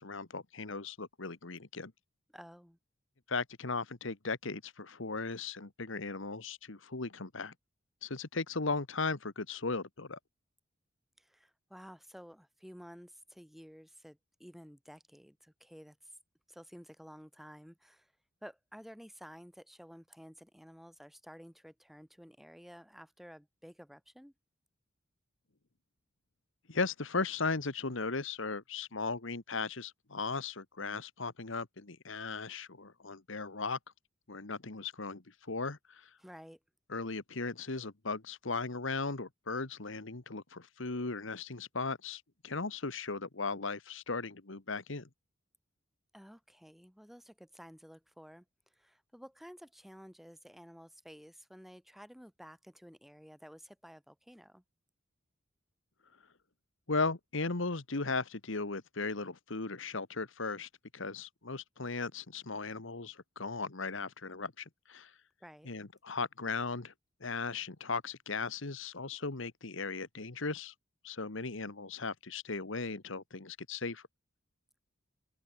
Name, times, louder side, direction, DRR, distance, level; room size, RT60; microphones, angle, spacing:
voice 1, 0.0-1.9 3.3-7.5 8.0-10.2 26.7-33.8 34.3-36.1 36.9-45.1 56.9-65.1 65.6-66.9 67.2-70.7 71.0-74.0, left 4 dB, 70° left, 1.5 m, -37 dB
voice 2, 2.3-2.8 11.2-16.1 16.5-18.1 18.4-24.3 36.2-36.6 46.1-48.5 48.7-54.6 65.4-65.7, equal, ahead, 7.0 m, -53 dB
open air
head